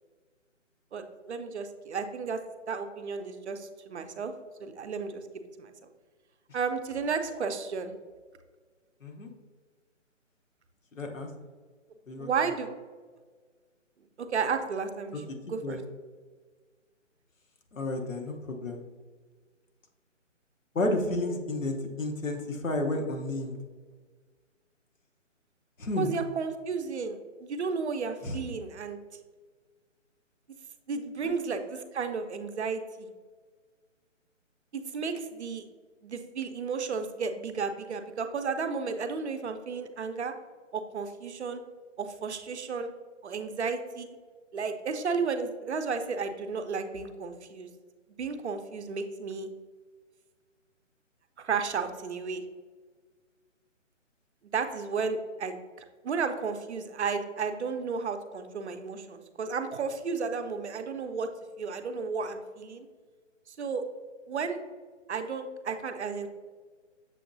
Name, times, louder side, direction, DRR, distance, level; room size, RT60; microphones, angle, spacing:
voice 1, 0.9-2.4 2.7-4.3 4.6-5.2 5.6-5.7 6.5-7.9 12.2-12.7 14.2-15.8 17.9-18.1 26.0-29.0 30.9-33.1 34.7-35.6 36.0-40.3 40.7-41.6 42.0-42.9 43.2-44.1 44.5-47.7 48.2-49.5 51.4-52.4 54.5-55.5 56.0-61.3 61.6-62.9 63.5-63.8 64.3-64.6 65.1-66.3, right 5 dB, 60° right, 7 dB, 0.6 m, -33 dB
voice 2, 9.0-9.3 10.9-11.3 12.1-12.3 15.3-15.8 17.7-18.8 20.7-23.6 25.8-26.1 28.2-28.4 31.2-31.3, left 2 dB, 85° left, 3 dB, 0.9 m, -32 dB
6.8 x 2.9 x 2.5 m, 1.5 s
figure-of-eight pair, 145°, 38 cm